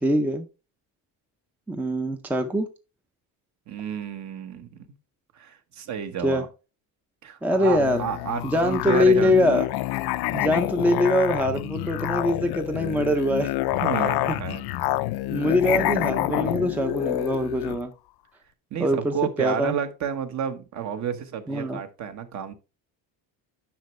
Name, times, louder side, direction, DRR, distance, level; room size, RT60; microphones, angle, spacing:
voice 1, 0.0-0.5 1.7-2.7 6.2-6.4 7.4-8.0 8.4-9.7 10.3-13.5 15.3-17.9 18.8-19.7 21.5-21.8, left 1 dB, 5° right, 0.5 m, -23 dB
voice 2, 3.7-4.7 5.3-6.5 7.2-9.3 13.7-14.6 18.7-22.5, right 8 dB, 50° right, 1.3 m, -31 dB
Musical instrument, 7.7-17.8, left 16 dB, 90° left, 0.6 m, -28 dB
10.5 x 6.2 x 3.2 m
cardioid pair, 180°, 37 cm